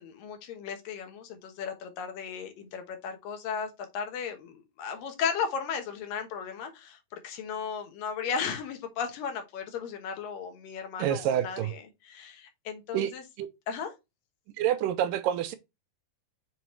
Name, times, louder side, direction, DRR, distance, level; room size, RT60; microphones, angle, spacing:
voice 1, 0.0-7.0 7.2-13.2 13.7-13.9, left 6 dB, 75° left, 2.8 m, -35 dB
voice 2, 11.0-11.7 12.9-13.1 13.4-13.5 14.6-15.6, right 11 dB, 80° right, 2.1 m, -27 dB
6.8 x 4.5 x 3.1 m
omnidirectional pair, 4.1 m